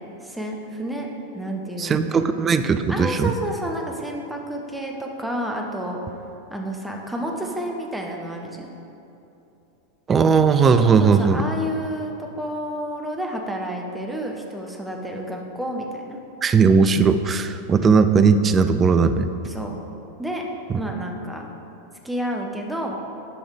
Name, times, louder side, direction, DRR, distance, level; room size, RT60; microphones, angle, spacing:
voice 1, 0.2-1.1 1.3-2.2 2.9-6.0 6.5-8.7 10.8-16.2 19.5-19.7 20.2-20.5 20.7-21.5 22.0-23.0, equal, 5° right, 1 dB, 1.0 m, -30 dB
voice 2, 1.8-3.3 10.1-11.4 16.4-19.3 20.7-20.8, right 5 dB, 20° right, 10 dB, 0.4 m, -18 dB
10.0 x 5.4 x 4.8 m, 2.8 s
figure-of-eight pair, 90°, 0 cm